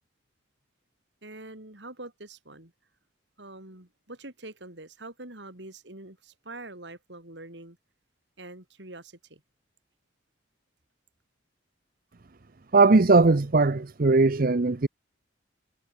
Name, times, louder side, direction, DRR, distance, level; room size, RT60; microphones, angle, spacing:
voice 1, 1.2-2.7 3.4-7.8 8.4-9.4, right 2 dB, 65° right, 4.8 m, -44 dB
voice 2, 12.7-14.9, right 3 dB, 50° right, 0.7 m, -19 dB
head